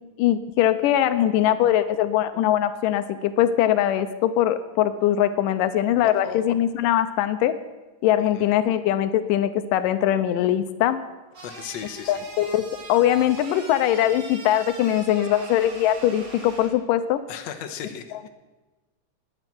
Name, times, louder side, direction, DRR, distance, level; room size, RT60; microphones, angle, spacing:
voice 1, 0.2-7.6 8.0-11.0 12.1-17.2, left 11 dB, 85° left, 11 dB, 2.3 m, -21 dB
voice 2, 6.0-6.4 8.3-8.5 11.4-12.2 17.3-18.3, left 8 dB, 65° left, 4 dB, 2.1 m, -36 dB
sound 1, 11.4-16.7, right 3 dB, 85° right, 4.2 m, -41 dB
20.0 x 9.0 x 6.0 m, 1.2 s
omnidirectional pair, 3.7 m